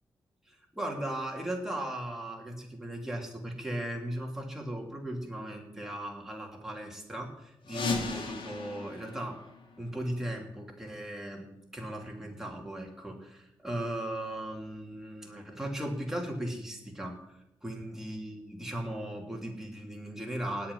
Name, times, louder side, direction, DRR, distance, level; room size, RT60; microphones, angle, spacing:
voice 1, 0.5-9.4 9.8-20.7, right 1 dB, 5° right, 0 dB, 3.0 m, -37 dB
sound 1, 7.6-10.3, left 4 dB, 75° left, 2.8 m, -37 dB
17.5 x 5.8 x 9.8 m, 0.83 s
wide cardioid pair, 145°, 9 cm